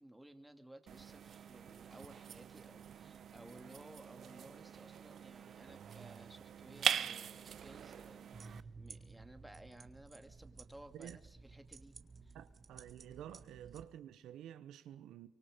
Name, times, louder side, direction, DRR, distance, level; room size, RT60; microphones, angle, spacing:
voice 1, 0.0-12.0 12.2-12.4, right 1 dB, 5° right, 2.3 m, -57 dB
sound 1, 0.9-8.6, right 8 dB, 60° right, 0.8 m, -42 dB
sound 2, 8.3-13.8, right 4 dB, 40° right, 1.9 m, -55 dB
voice 2, 12.3-15.3, right 11 dB, 80° right, 1.0 m, -50 dB
24.5 x 24.5 x 5.2 m
cardioid pair, 90°, 0 cm